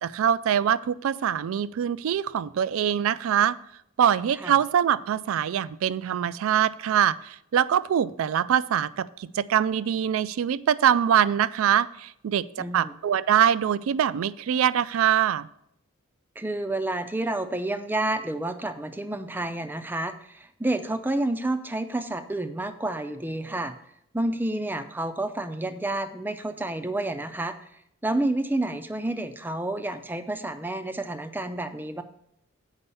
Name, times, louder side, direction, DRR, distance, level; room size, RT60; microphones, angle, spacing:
voice 1, 0.0-3.6 4.0-15.5, right 9 dB, 75° right, 18 dB, 0.3 m, -23 dB
voice 2, 12.6-12.9 16.4-23.7 24.1-27.6 28.0-32.0, right 2 dB, 10° right, 9 dB, 0.4 m, -29 dB
8.1 x 5.4 x 5.4 m, 0.73 s
head